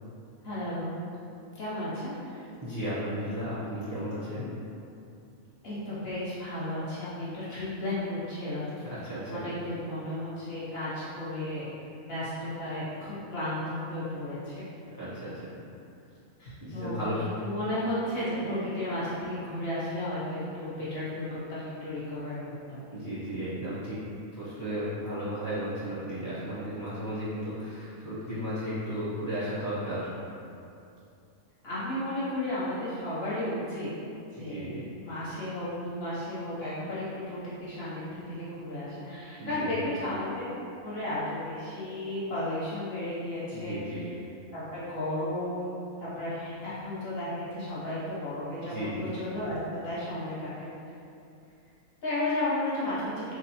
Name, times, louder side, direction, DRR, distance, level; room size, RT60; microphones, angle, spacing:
voice 1, 0.4-1.0 1.5-2.1 5.6-8.9 9.3-11.7 12.0-14.6 16.4-17.0 17.4-22.9 31.6-33.9 34.3-34.7 35.0-40.4 40.8-44.2 44.5-48.7 49.0-50.7 52.0-53.1, left 1 dB, 50° left, -10 dB, 0.9 m, -34 dB
voice 2, 2.6-4.5 9.0-9.4 14.9-15.3 16.6-17.2 22.9-24.0 24.3-30.2 34.4-34.8 39.4-39.7 43.5-44.0 48.7-49.0, equal, 30° right, -13 dB, 0.3 m, -34 dB
3.1 x 2.0 x 2.7 m, 2.6 s
omnidirectional pair, 1.5 m